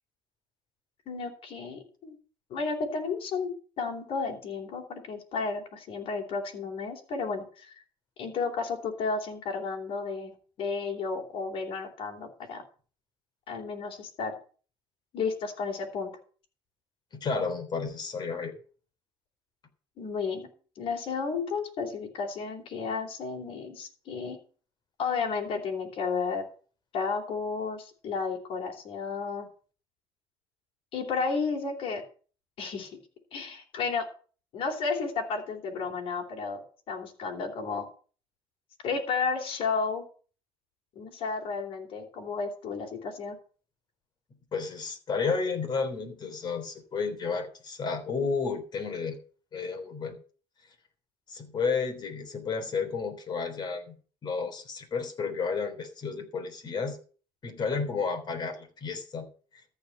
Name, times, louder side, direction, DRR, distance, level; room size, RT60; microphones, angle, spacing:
voice 1, 1.1-2.2 2.5-7.8 8.2-10.3 10.6-12.6 13.5-14.4 15.1-16.1 20.0-20.5 20.8-24.4 25.0-26.4 26.9-29.5 30.9-32.0 32.6-32.9 33.3-34.1 34.5-37.9 38.8-40.1 41.0-43.4, left 4 dB, 65° left, 2 dB, 3.5 m, -32 dB
voice 2, 17.1-18.5 44.5-49.2 49.5-50.2 51.3-53.9 54.2-57.0 57.4-59.3, left 5 dB, 45° left, 7 dB, 3.4 m, -32 dB
14.0 x 5.0 x 8.1 m, 0.39 s
cardioid pair, 95°, 10 cm